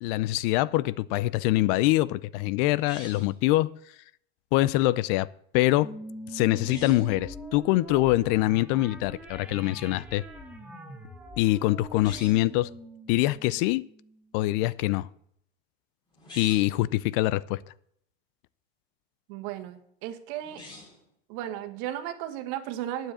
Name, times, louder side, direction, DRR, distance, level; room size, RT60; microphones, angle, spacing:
voice 1, 0.0-3.7 4.5-5.3 5.5-5.9 6.3-10.2 11.4-12.7 13.1-13.9 14.3-15.1 16.4-17.6, left 17 dB, 55° left, 0.5 m, -24 dB
sound 1, 2.8-3.4 6.6-7.1 11.9-12.5 16.1-16.8 20.4-21.1, left 2 dB, 15° left, 4.4 m, -45 dB
sound 2, 5.8-14.6, equal, 5° right, 1.6 m, -43 dB
voice 2, 19.3-20.6 21.3-23.1, right 12 dB, 60° right, 1.6 m, -35 dB
9.2 x 7.5 x 8.3 m
supercardioid pair, 135°, 32 cm